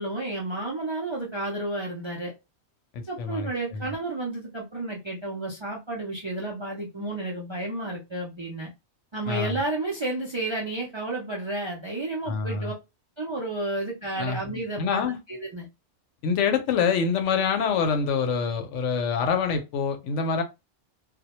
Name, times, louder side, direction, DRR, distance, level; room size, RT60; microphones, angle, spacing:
voice 1, 0.0-2.3 3.1-8.7 9.1-12.7 13.2-15.7, right 2 dB, 50° right, 0.3 m, -31 dB
voice 2, 2.9-3.8 9.3-9.6 12.3-12.7 14.2-14.4 14.8-15.2 16.2-20.4, left 6 dB, 85° left, 0.9 m, -26 dB
2.2 x 2.1 x 2.8 m
omnidirectional pair, 1.2 m